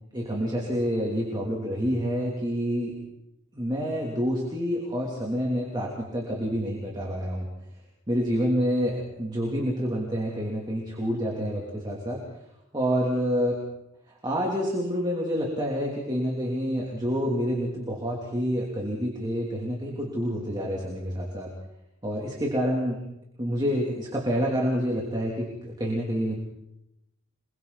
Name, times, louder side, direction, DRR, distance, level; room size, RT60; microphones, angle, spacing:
voice 1, 0.1-2.9 3.5-7.5 8.1-12.2 12.7-13.6 14.2-21.5 22.0-23.0 23.4-26.3, equal, 20° right, -2 dB, 3.1 m, -28 dB
27.5 x 23.0 x 4.2 m, 0.86 s
head